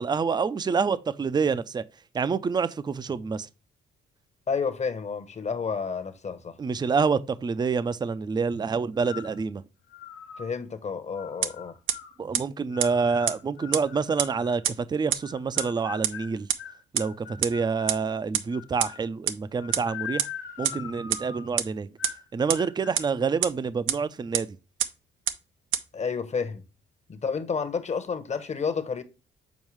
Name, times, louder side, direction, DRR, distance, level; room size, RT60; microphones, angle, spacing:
voice 1, 0.0-1.8 2.1-3.5 6.6-9.6 12.2-16.5 16.9-20.3 20.6-21.9 22.3-24.5, right 5 dB, 20° right, 0.4 m, -27 dB
voice 2, 4.5-6.6 10.4-11.7 25.9-26.6 27.1-29.0, left 5 dB, 35° left, 0.9 m, -30 dB
sound 1, 9.0-9.4 9.9-10.5 11.2-12.2 12.7-14.6 15.2-18.0 18.5-19.1 19.6-21.5 22.0-22.3 22.5-23.0, left 8 dB, 75° left, 0.9 m, -42 dB
sound 2, 11.4-11.5 11.9-12.0 12.3-12.4 12.8-12.9 13.3-13.4 13.7-13.8 14.2-14.3 14.6-14.7 15.1-15.2 15.6-15.7 16.0-16.1 16.5-16.6 16.9-17.0 17.4-17.5 17.9-18.0 18.3-18.4 18.8-18.9 19.3-19.4 19.7-19.8 20.2-20.3 20.6-20.7 21.1-21.2 21.6-21.7 22.0-22.1 22.5-22.6 23.0-23.1 23.4-23.5 23.9-24.0 24.3-24.4 24.8-24.9 25.3-25.4 25.7-25.8, right 11 dB, 90° right, 0.6 m, -23 dB
7.2 x 4.4 x 3.1 m
cardioid pair, 90°, 20 cm